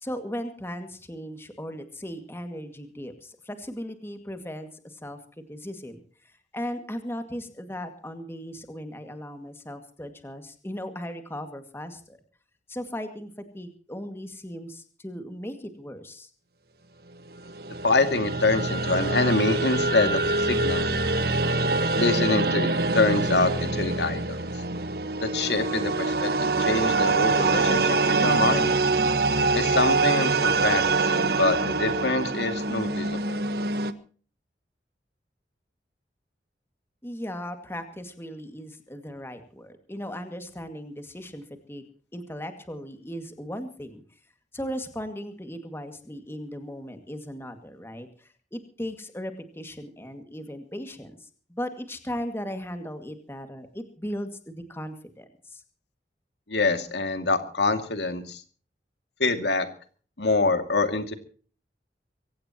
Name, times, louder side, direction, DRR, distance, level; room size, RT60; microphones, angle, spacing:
voice 1, 0.0-5.2 5.5-12.2 12.7-16.3 37.0-41.8 42.1-44.0 44.5-55.6, equal, 15° left, 7 dB, 2.1 m, -37 dB
sound 1, 17.4-33.9, right 3 dB, 60° right, 1.4 m, -25 dB
voice 2, 17.8-20.9 21.9-24.4 25.2-28.7 29.5-30.8 31.1-33.4 56.5-58.4 59.2-59.7 60.2-61.1, left 3 dB, 75° left, 8 dB, 2.4 m, -25 dB
24.0 x 17.5 x 3.0 m, 0.42 s
head